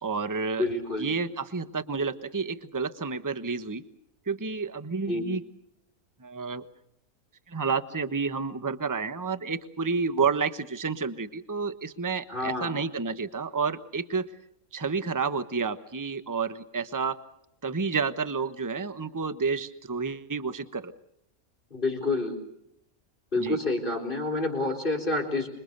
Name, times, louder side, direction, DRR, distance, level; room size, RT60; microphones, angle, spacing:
voice 1, 0.0-0.7 1.0-3.8 4.3-5.4 6.2-6.6 7.5-14.3 14.7-17.2 17.6-20.9 23.4-23.6, right 5 dB, 15° right, 11 dB, 1.0 m, -30 dB
voice 2, 0.6-1.1 5.1-5.2 12.3-12.7 21.7-22.4 23.3-25.5, left 2 dB, 35° left, 2 dB, 4.3 m, -28 dB
26.5 x 23.5 x 6.7 m, 0.76 s
omnidirectional pair, 1.5 m